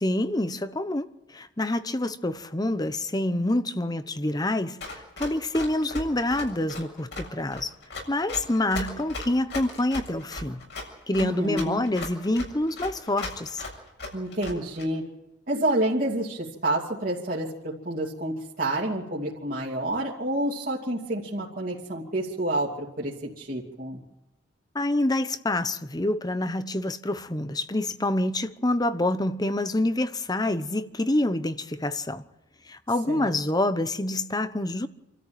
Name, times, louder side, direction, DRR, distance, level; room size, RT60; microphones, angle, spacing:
voice 1, 0.0-7.7 8.1-10.6 11.1-13.6 24.7-32.2 32.7-34.9, left 1 dB, 20° left, 1.0 m, -27 dB
Run, 4.8-14.8, left 2 dB, 70° left, 7.3 m, -37 dB
voice 2, 11.2-11.8 14.1-15.0 15.5-17.5 17.8-24.0 33.1-33.3, right 1 dB, 50° right, 2.7 m, -28 dB
28.0 x 13.5 x 9.1 m
head